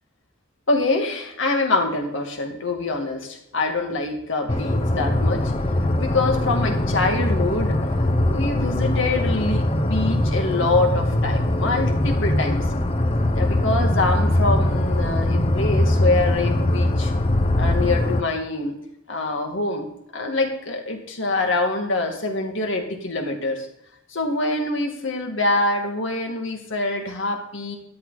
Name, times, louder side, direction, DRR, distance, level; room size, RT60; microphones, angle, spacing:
voice 1, 0.7-5.5 5.9-7.8 8.3-12.7 13.3-17.1 17.6-18.8 19.1-23.7 24.1-27.8, left 2 dB, 70° left, 3 dB, 2.3 m, -25 dB
sound 1, 4.5-18.2, left 1 dB, 30° left, 1.0 m, -21 dB
13.0 x 11.0 x 4.2 m, 0.78 s
head